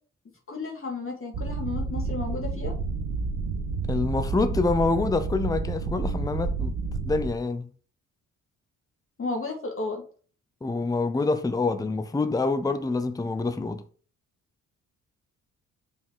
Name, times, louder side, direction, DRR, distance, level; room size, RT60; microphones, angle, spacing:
voice 1, 0.5-2.7 9.2-10.0, left 3 dB, 30° left, 2.1 m, -33 dB
sound 1, 1.3-7.3, right 4 dB, 65° right, 1.4 m, -30 dB
voice 2, 3.9-7.7 10.6-13.8, left 3 dB, 10° left, 0.7 m, -26 dB
5.5 x 4.9 x 4.7 m
figure-of-eight pair, 40°, 42 cm